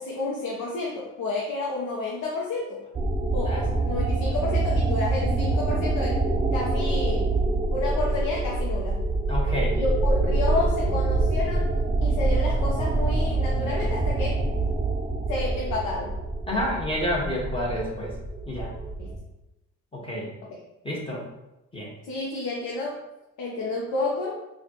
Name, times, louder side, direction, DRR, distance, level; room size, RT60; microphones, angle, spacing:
voice 1, 0.0-2.8 3.3-6.2 6.5-7.3 7.7-9.0 9.7-11.7 12.0-14.4 15.3-16.1 19.0-19.1 20.5-20.6 22.0-23.0 23.4-24.4, left 3 dB, 80° left, -2 dB, 0.8 m, -30 dB
sound 1, 2.9-19.2, right 2 dB, 15° right, 0.6 m, -25 dB
voice 2, 9.3-9.8 16.5-18.1 18.5-18.7 19.9-20.3 20.8-21.2 21.7-21.9, left 1 dB, 20° left, -3 dB, 1.3 m, -29 dB
4.8 x 2.4 x 2.9 m, 0.96 s
cardioid pair, 90°, 30 cm